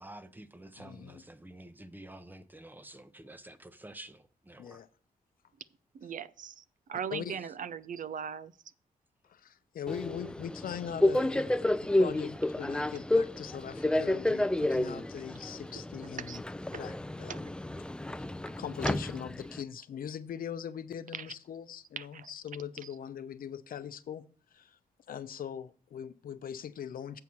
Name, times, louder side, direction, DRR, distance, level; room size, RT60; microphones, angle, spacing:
voice 1, 0.0-4.8, right 1 dB, 15° right, 0.8 m, -49 dB
voice 2, 0.8-1.2 4.6-4.9 7.1-7.4 9.2-16.4 16.7-17.5 18.2-18.3 18.6-24.8 25.1-27.2, left 9 dB, 75° left, 0.6 m, -41 dB
voice 3, 5.9-6.6 6.9-8.5 16.2-16.4 17.3-17.4 21.1-21.3 22.0-22.3, right 7 dB, 65° right, 0.5 m, -39 dB
Subway metro underground, 9.9-19.6, left 1 dB, 5° left, 0.4 m, -31 dB
7.8 x 4.6 x 7.1 m
cardioid pair, 90°, 15 cm